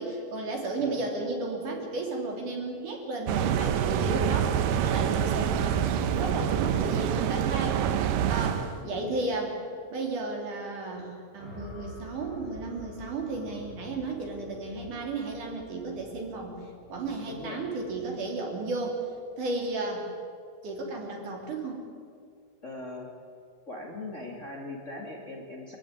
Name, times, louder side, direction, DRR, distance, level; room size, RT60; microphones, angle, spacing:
voice 1, 0.0-9.6 9.9-16.6 16.9-19.0 19.4-20.1 20.6-21.9, right 2 dB, 65° right, 1 dB, 4.7 m, -34 dB
sound 1, 3.3-8.8, right 9 dB, 80° right, 2.6 m, -26 dB
voice 2, 8.5-9.2 17.3-17.6 22.6-23.1 23.7-25.8, left 2 dB, 25° left, -1 dB, 2.7 m, -40 dB
sound 2, 11.4-19.6, equal, 15° right, 7.9 m, -49 dB
25.0 x 15.5 x 9.8 m, 2.2 s
omnidirectional pair, 4.0 m